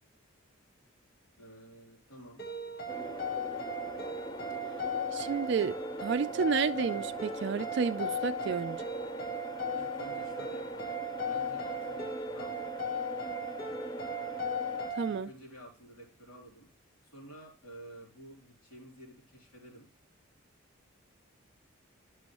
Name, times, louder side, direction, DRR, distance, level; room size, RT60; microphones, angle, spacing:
voice 1, 1.4-2.4 6.7-7.1 9.7-11.0 11.3-12.7 15.0-16.7 17.0-19.9, right 1 dB, 85° left, 3.3 m, -51 dB
sound 1, 2.4-15.2, left 1 dB, 45° left, 1.2 m, -37 dB
sound 2, 2.9-14.9, equal, 20° left, 0.4 m, -42 dB
voice 2, 5.1-5.8 6.0-8.8 14.9-15.3, right 5 dB, 55° right, 0.3 m, -31 dB
11.0 x 6.1 x 3.0 m
head